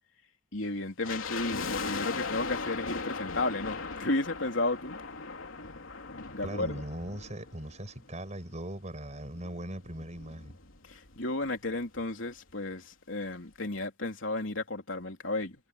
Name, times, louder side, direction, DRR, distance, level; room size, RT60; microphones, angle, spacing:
voice 1, 0.5-5.0 6.3-6.7 10.9-15.6, left 2 dB, 70° left, 3.7 m, -33 dB
sound 1, 1.0-8.3 8.6-8.7 9.4-11.2 11.4-11.5 11.8-12.1 12.5-12.6, left 4 dB, 90° left, 3.2 m, -38 dB
voice 2, 6.4-10.5, right 1 dB, 35° right, 6.5 m, -39 dB
head